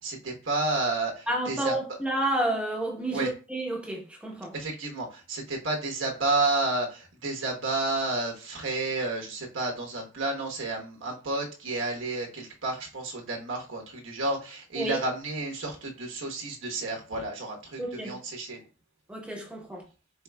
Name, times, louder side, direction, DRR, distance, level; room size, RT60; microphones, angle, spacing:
voice 1, 0.0-1.8 3.1-3.3 4.5-18.6, right 2 dB, 85° right, 1.2 m, -31 dB
voice 2, 1.3-4.5 14.8-15.0 17.8-18.2 19.1-19.8, right 1 dB, 5° right, 0.9 m, -30 dB
4.6 x 4.4 x 2.3 m
head